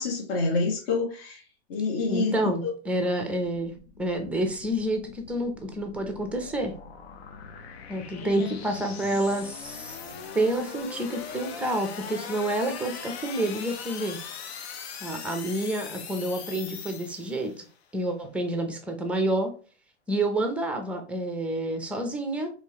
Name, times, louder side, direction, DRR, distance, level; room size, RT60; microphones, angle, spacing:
voice 1, 0.0-1.4 1.7-2.4 2.6-2.7 8.2-8.5, left 3 dB, 40° left, 0 dB, 1.3 m, -27 dB
voice 2, 2.1-3.7 4.0-6.7 7.9-10.0 10.3-14.2 15.0-17.7 17.9-19.5 20.1-22.5, right 1 dB, 5° right, 5 dB, 0.5 m, -28 dB
sound 1, 3.4-17.6, left 6 dB, 65° left, 0.9 m, -41 dB
4.4 x 3.3 x 2.9 m, 0.38 s
hypercardioid pair, 135°, 34 cm